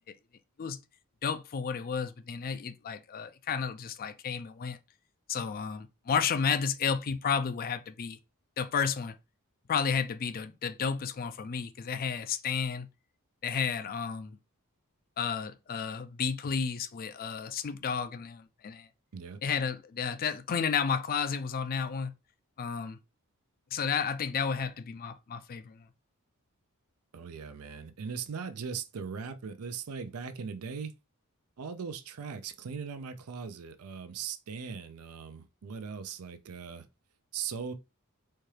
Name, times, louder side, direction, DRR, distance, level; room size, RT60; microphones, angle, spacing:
voice 1, 1.2-4.8 5.3-8.2 8.6-9.2 9.7-12.9 13.4-14.4 15.2-18.9 19.4-22.1 22.6-23.0 23.7-25.8, left 6 dB, 40° left, 0.4 m, -32 dB
voice 2, 27.1-30.9 31.6-36.9 37.3-37.7, right 6 dB, 80° right, 0.5 m, -39 dB
4.3 x 2.3 x 3.2 m
head